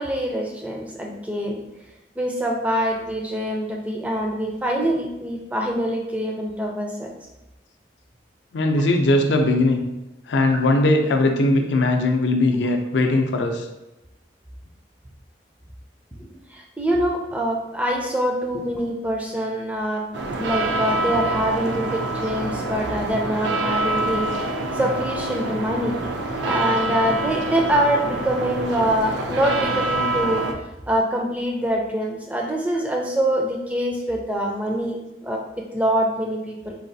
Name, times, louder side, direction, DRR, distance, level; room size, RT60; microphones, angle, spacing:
voice 1, 0.0-1.6 2.2-7.1 10.5-10.6 16.2-26.1 26.4-30.5 30.9-36.7, equal, 10° right, 0 dB, 0.3 m, -25 dB
voice 2, 8.5-9.8 10.3-13.7, left 2 dB, 75° left, 4 dB, 0.4 m, -19 dB
sound 1, 20.1-30.5, right 2 dB, 75° right, 0.4 m, -26 dB
4.0 x 2.3 x 2.6 m, 0.98 s
head